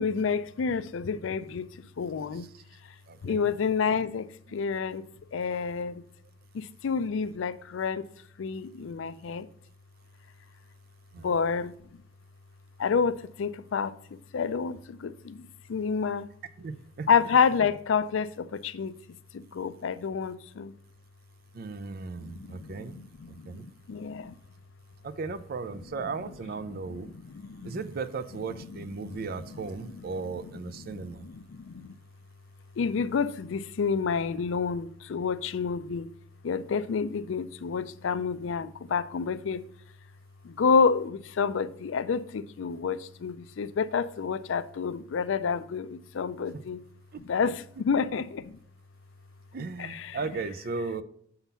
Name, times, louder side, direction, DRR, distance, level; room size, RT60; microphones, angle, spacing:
voice 1, 0.0-1.7 2.0-2.5 3.2-5.0 5.3-6.0 6.5-8.1 8.4-9.5 11.2-11.7 12.8-13.9 14.3-16.3 17.1-19.0 19.3-20.7 22.2-23.5 23.9-24.3 27.3-27.8 29.0-29.2 30.9-31.9 32.8-36.1 36.4-39.6 40.4-46.8 47.3-48.6 49.8-50.2, left 5 dB, 70° left, 0.4 m, -29 dB
voice 2, 2.3-2.6 3.1-3.5 4.5-4.6 11.1-11.3 16.6-17.1 21.5-23.0 23.3-23.6 25.0-27.1 27.6-31.2 46.5-46.6 47.1-47.5 49.5-51.0, right 4 dB, 50° right, 0.4 m, -36 dB
7.1 x 3.9 x 5.4 m
head